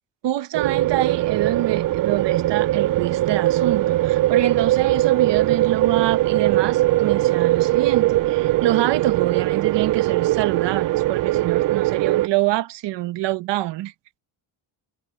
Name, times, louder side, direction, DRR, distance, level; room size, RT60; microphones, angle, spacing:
voice 1, 0.2-13.9, right 14 dB, 75° right, 1.3 m, -26 dB
sound 1, 0.5-12.3, right 16 dB, 50° right, 0.4 m, -20 dB
cardioid pair, 90°, 43 cm